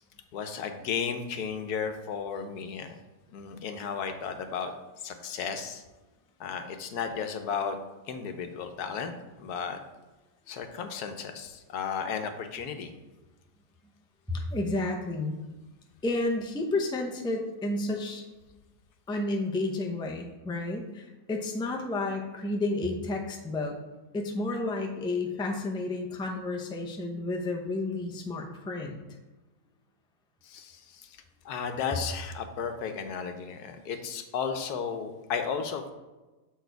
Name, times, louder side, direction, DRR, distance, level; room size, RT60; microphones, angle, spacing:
voice 1, 0.3-2.9 3.3-4.7 5.0-5.8 6.4-7.8 8.1-9.8 10.5-12.9 30.4-31.2 31.4-35.9, left 6 dB, 90° left, 7 dB, 1.3 m, -34 dB
voice 2, 14.3-15.4 16.0-18.3 19.1-23.8 24.1-29.0, left 2 dB, 5° left, 1 dB, 0.4 m, -31 dB
6.9 x 4.7 x 4.6 m, 1.2 s
omnidirectional pair, 1.6 m